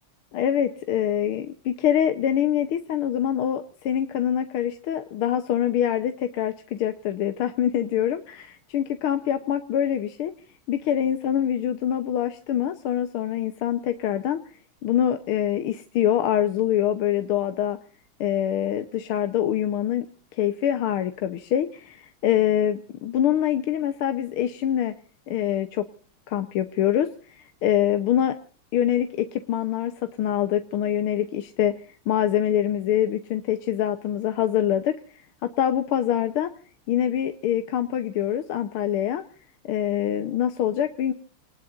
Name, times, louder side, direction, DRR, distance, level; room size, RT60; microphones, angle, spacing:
voice 1, 0.3-10.3 10.7-14.4 14.8-17.8 18.2-20.1 20.4-24.9 25.3-25.9 26.3-28.4 28.7-31.7 32.1-34.9 35.4-36.5 36.9-39.2 39.6-41.1, left 10 dB, 80° left, 8 dB, 1.8 m, -24 dB
28.5 x 19.5 x 2.5 m, 0.41 s
omnidirectional pair, 2.4 m